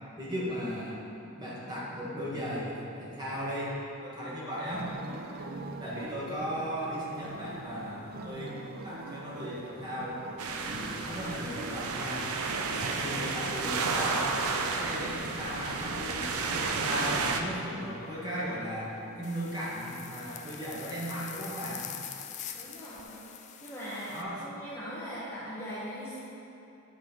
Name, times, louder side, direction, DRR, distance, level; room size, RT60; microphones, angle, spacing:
voice 1, 0.2-1.0 1.4-3.7 4.0-4.8 5.8-8.6 8.8-10.2 10.5-12.3 12.8-21.9 24.1-24.5, equal, 20° right, -8 dB, 1.9 m, -36 dB
sound 1, 4.7-23.0, right 2 dB, 45° right, 0.6 m, -45 dB
sound 2, 10.4-17.4, right 4 dB, 90° right, 0.6 m, -32 dB
sound 3, 19.2-24.2, left 9 dB, 35° left, 0.4 m, -44 dB
voice 2, 22.5-23.3 23.6-26.1, equal, 10° left, -9 dB, 1.0 m, -40 dB
9.9 x 5.6 x 4.6 m, 2.9 s
head